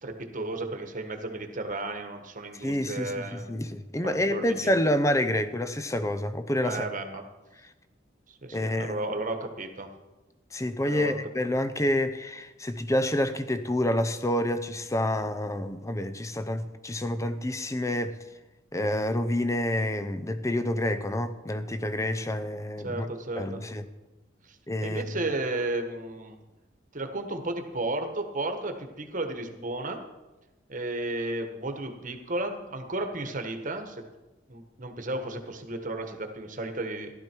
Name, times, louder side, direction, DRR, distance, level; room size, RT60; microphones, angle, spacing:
voice 1, 0.0-3.4 4.3-4.8 6.6-7.2 8.3-9.9 10.8-11.1 22.8-23.6 24.4-26.4 26.9-30.0 30.7-34.0 34.5-37.1, right 2 dB, 45° right, 1.4 m, -33 dB
voice 2, 2.6-6.9 8.5-9.1 10.5-18.2 18.7-23.1 23.4-23.8 24.7-25.0, left 1 dB, 15° left, 0.7 m, -28 dB
15.0 x 11.5 x 4.6 m
head